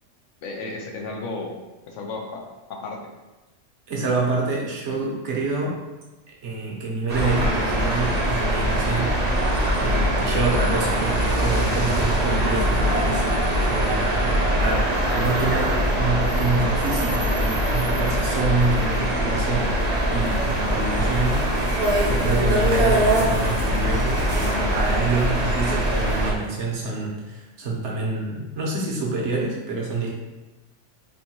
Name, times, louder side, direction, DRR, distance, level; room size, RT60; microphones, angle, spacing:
voice 1, 0.4-1.5 1.9-2.4 2.7-3.0, left 3 dB, 75° left, 1 dB, 0.9 m, -33 dB
voice 2, 3.9-5.8 6.4-9.5 9.8-13.2 13.7-19.7 20.1-21.7 22.0-30.1, right 3 dB, 70° right, -3 dB, 1.0 m, -27 dB
sound 1, 7.1-26.3, right 1 dB, 40° right, 0.6 m, -22 dB
3.6 x 2.6 x 2.9 m, 1.1 s
omnidirectional pair, 1.3 m